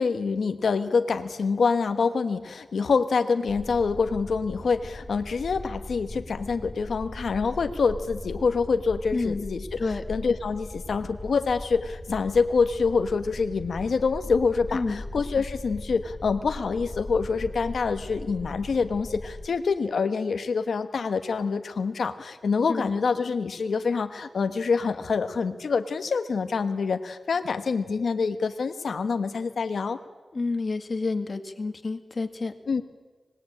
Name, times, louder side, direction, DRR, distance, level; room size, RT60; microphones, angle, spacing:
voice 1, 0.0-30.0 32.7-32.8, left 5 dB, 90° left, 8 dB, 1.2 m, -26 dB
sound 1, 3.5-19.5, left 1 dB, 25° left, 4.9 m, -39 dB
voice 2, 9.1-9.5 9.8-10.0 14.7-15.0 22.7-22.9 30.3-32.5, left 3 dB, 55° left, 8 dB, 2.1 m, -29 dB
25.5 x 20.5 x 8.7 m, 1.3 s
cardioid pair, 60°, 0 cm